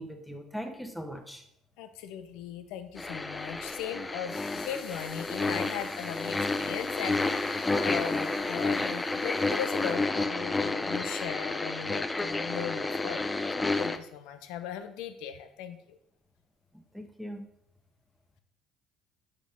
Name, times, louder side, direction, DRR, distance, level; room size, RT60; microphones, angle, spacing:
voice 1, 0.0-1.4 16.7-17.5, equal, ahead, 5 dB, 1.1 m, -40 dB
voice 2, 1.8-13.3 13.5-16.0, left 9 dB, 75° left, 9 dB, 0.7 m, -38 dB
sound 1, 3.0-14.0, left 3 dB, 20° left, 0.5 m, -30 dB
6.0 x 5.1 x 5.6 m, 0.76 s
hypercardioid pair, 65°, 0 cm